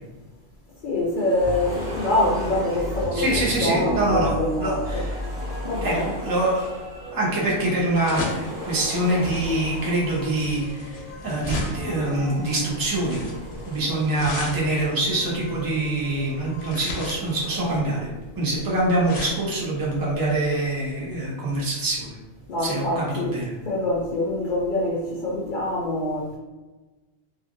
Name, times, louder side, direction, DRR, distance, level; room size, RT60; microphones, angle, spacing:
voice 1, 0.8-3.3 3.6-5.0 5.6-6.1 22.5-23.4 23.6-26.4, left 1 dB, 60° left, -4 dB, 0.6 m, -25 dB
sound 1, 1.0-3.6 4.2-7.1 7.5-10.7 11.3-16.1 16.7-17.8, equal, 50° right, 0.9 m, -40 dB
sound 2, 1.4-16.8, left 1 dB, 75° right, 1.6 m, -36 dB
voice 2, 3.1-4.3 4.6-5.2 5.8-6.6 7.1-13.2 13.7-18.1 18.4-22.1 22.6-23.5, right 1 dB, 25° right, -4 dB, 0.6 m, -25 dB
sound 3, 6.6-21.3, left 2 dB, 85° left, 1.0 m, -37 dB
3.1 x 2.4 x 2.5 m, 1.2 s
omnidirectional pair, 1.2 m